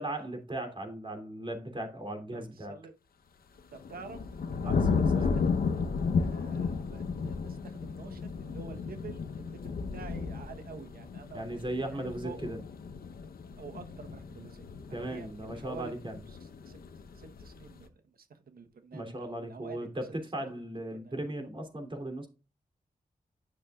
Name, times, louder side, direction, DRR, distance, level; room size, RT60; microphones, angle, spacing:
voice 1, 0.0-2.7 4.6-5.4 11.3-12.6 14.9-16.2 18.9-22.3, right 1 dB, 35° right, 3 dB, 3.1 m, -37 dB
voice 2, 2.3-2.9 3.7-4.2 4.6-5.8 6.2-11.4 11.9-12.4 13.6-15.9 16.3-20.2 20.9-21.2, right 5 dB, 80° right, 8 dB, 1.1 m, -48 dB
sound 1, 3.6-17.8, left 5 dB, 85° left, 0.9 m, -33 dB
10.5 x 6.6 x 2.4 m, 0.31 s
cardioid pair, 60°, 15 cm